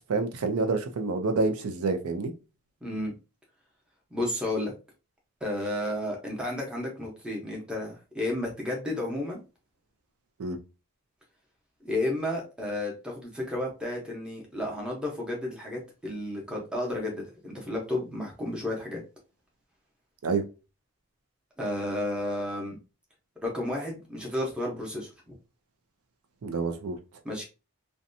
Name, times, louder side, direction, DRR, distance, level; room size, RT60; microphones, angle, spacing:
voice 1, 0.1-2.3 10.4-10.6 20.2-20.4 26.4-27.0, right 3 dB, 90° right, 0.5 m, -28 dB
voice 2, 2.8-3.1 4.1-4.7 5.4-9.4 11.8-19.0 21.6-22.8 23.4-25.3 27.2-27.4, left 1 dB, 5° right, 0.7 m, -32 dB
2.6 x 2.2 x 2.5 m
head